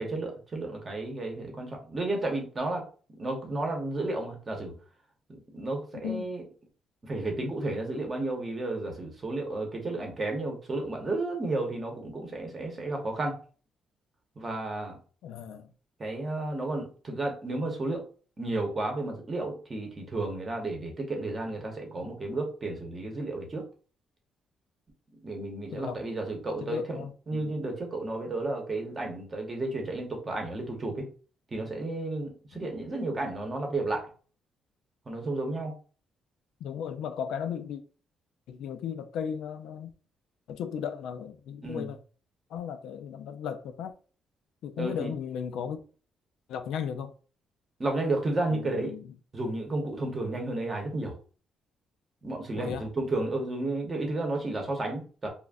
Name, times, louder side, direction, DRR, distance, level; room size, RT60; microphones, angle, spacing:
voice 1, 0.0-2.9 3.2-4.7 5.3-6.4 7.0-13.4 14.4-15.0 16.0-18.0 18.4-23.7 25.2-31.1 31.5-34.1 35.1-35.7 41.6-42.0 44.8-45.1 47.8-48.9 49.3-51.2 52.2-55.3, right 2 dB, 25° right, 0.8 m, -32 dB
voice 2, 15.2-15.7 25.7-26.0 26.6-27.5 36.6-37.8 38.5-39.9 40.5-42.0 42.5-43.9 44.6-45.8 46.5-47.1 48.5-49.1 52.5-52.9, left 8 dB, 85° left, 0.3 m, -35 dB
2.4 x 2.1 x 3.4 m
cardioid pair, 140°, 0 cm